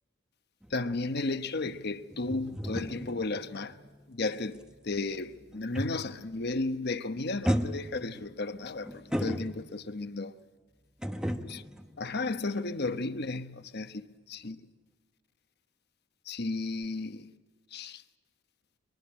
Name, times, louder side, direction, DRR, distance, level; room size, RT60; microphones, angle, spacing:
sound 1, 0.6-6.3 6.6-7.0 7.4-10.0 11.0-12.9 13.2-13.4, equal, 5° right, 1.0 m, -36 dB
voice 1, 0.7-3.8 4.1-10.4 11.5-11.6 12.0-14.6 16.3-17.3 17.7-18.0, left 3 dB, 50° left, 1.0 m, -34 dB
23.0 x 22.5 x 8.7 m
head